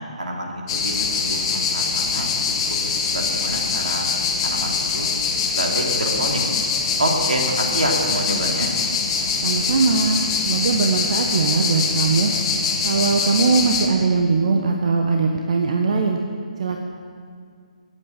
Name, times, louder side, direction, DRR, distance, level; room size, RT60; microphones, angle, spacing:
voice 1, 0.2-2.3 2.7-4.1 4.4-5.1 5.5-6.4 7.0-8.7, right 1 dB, 85° right, -1 dB, 3.3 m, -27 dB
sound 1, 0.7-13.9, left 5 dB, 35° left, 1.9 m, -23 dB
voice 2, 9.4-12.3 12.8-16.2 16.6-16.8, right 4 dB, 55° right, 2 dB, 1.3 m, -20 dB
17.5 x 8.7 x 6.9 m, 2.1 s
figure-of-eight pair, 145°, 4 cm